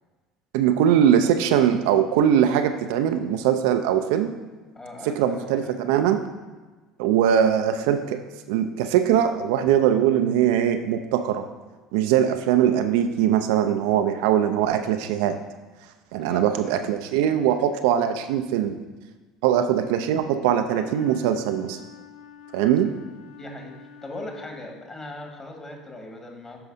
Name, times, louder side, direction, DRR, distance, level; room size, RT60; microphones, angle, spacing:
voice 1, 0.5-4.3 5.1-6.2 7.0-8.2 8.5-11.5 11.9-15.4 16.1-18.8 19.4-21.8 22.5-23.0, right 9 dB, 65° right, 7 dB, 0.4 m, -21 dB
voice 2, 4.7-5.8 16.2-16.7 23.3-26.6, left 1 dB, 25° left, 2 dB, 1.6 m, -39 dB
Wind instrument woodwind instrument, 20.6-25.1, left 8 dB, 75° left, 0.5 m, -47 dB
11.5 x 4.9 x 2.7 m, 1.3 s
figure-of-eight pair, 65°, 2 cm